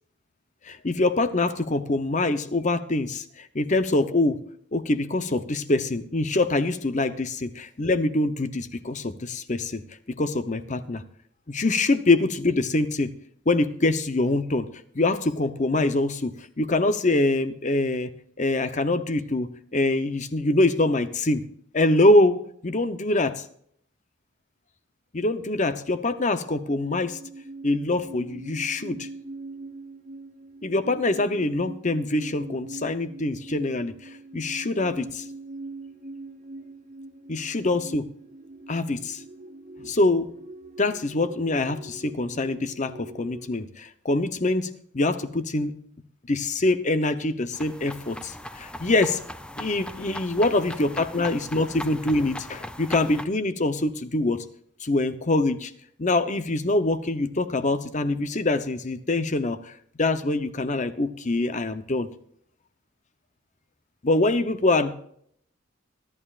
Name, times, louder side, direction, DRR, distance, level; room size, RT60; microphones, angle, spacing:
voice 1, 0.6-4.4 4.7-9.8 10.1-11.0 11.5-13.1 13.5-14.7 14.9-18.1 18.4-21.4 21.7-23.4 25.1-27.2 27.6-29.1 30.6-35.2 37.3-38.0 38.7-39.2 39.8-40.3 40.8-44.7 44.9-45.7 46.3-49.2 49.6-54.4 54.8-55.7 56.0-59.7 60.0-62.1 64.0-64.9, left 2 dB, 35° left, 11 dB, 0.8 m, -24 dB
sound 1, 26.4-43.5, right 2 dB, 40° right, 0.9 m, -42 dB
sound 2, 47.5-53.2, left 1 dB, 5° left, 0.5 m, -39 dB
23.0 x 11.5 x 2.5 m, 0.66 s
head